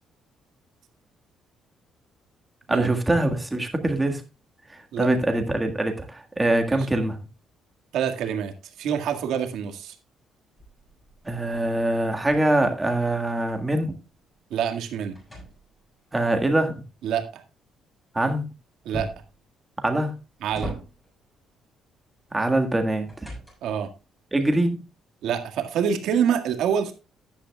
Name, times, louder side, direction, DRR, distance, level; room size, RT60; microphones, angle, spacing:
voice 1, 2.7-4.2 4.7-7.1 11.2-13.9 16.1-16.8 18.1-18.4 19.8-20.1 22.3-23.3 24.3-24.8, right 1 dB, 10° right, 5 dB, 1.7 m, -23 dB
voice 2, 7.9-8.5 8.8-10.0 14.5-15.2 17.0-17.4 18.9-19.1 20.4-20.7 23.6-23.9 25.2-26.9, right 8 dB, 75° right, 5 dB, 1.8 m, -26 dB
sound 1, 10.6-13.5 13.8-16.1 18.9-19.4 20.0-21.3 22.5-23.9, equal, 15° left, 7.4 m, -41 dB
14.0 x 10.0 x 2.4 m, 0.28 s
cardioid pair, 150°, 0 cm